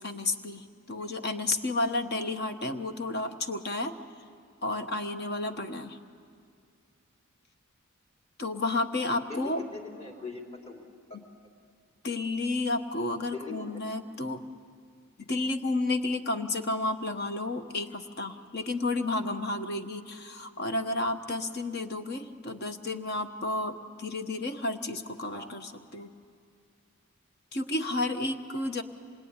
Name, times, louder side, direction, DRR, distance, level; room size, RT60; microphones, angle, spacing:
voice 1, 0.0-3.9 4.6-6.0 8.4-9.6 11.1-11.2 12.0-14.4 15.2-26.1 27.5-28.8, left 2 dB, 45° left, 7 dB, 1.3 m, -31 dB
voice 2, 9.1-10.8 13.3-13.8 25.3-25.5, left 3 dB, 30° left, 0 dB, 3.3 m, -41 dB
26.5 x 21.5 x 9.8 m, 2.3 s
head